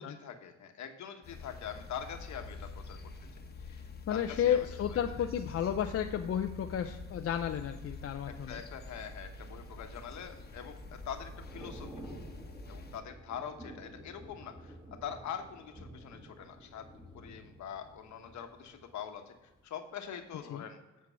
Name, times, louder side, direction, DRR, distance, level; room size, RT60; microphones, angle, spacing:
voice 1, 0.0-3.0 3.6-3.8 4.1-4.7 8.5-11.9 12.7-14.8 15.0-16.9 17.1-19.3 19.6-20.8, left 8 dB, 70° left, 6 dB, 1.2 m, -43 dB
sound 1, 1.2-13.0, left 3 dB, 35° left, 1.1 m, -46 dB
voice 2, 4.1-8.6 20.5-20.6, left 9 dB, 50° left, 6 dB, 0.5 m, -32 dB
Thunder / Rain, 9.7-19.6 20.0-20.2, right 1 dB, 15° right, 1.9 m, -51 dB
8.4 x 4.6 x 5.6 m, 1.1 s
cardioid pair, 90°, 30 cm